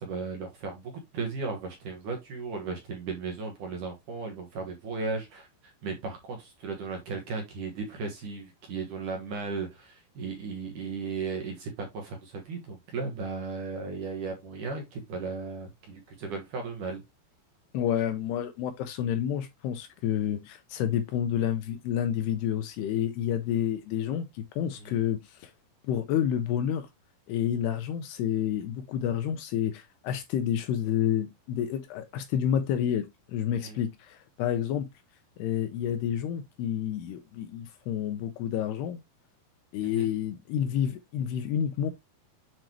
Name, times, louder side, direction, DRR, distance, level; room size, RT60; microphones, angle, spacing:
voice 1, 0.0-17.0 24.8-25.0 33.6-33.8 39.8-40.1, right 4 dB, 60° right, 2.4 m, -36 dB
voice 2, 17.7-25.5 25.8-26.9 27.3-34.9 35.4-39.0 39.7-41.9, left 9 dB, 80° left, 2.6 m, -29 dB
7.8 x 5.1 x 3.0 m
omnidirectional pair, 5.2 m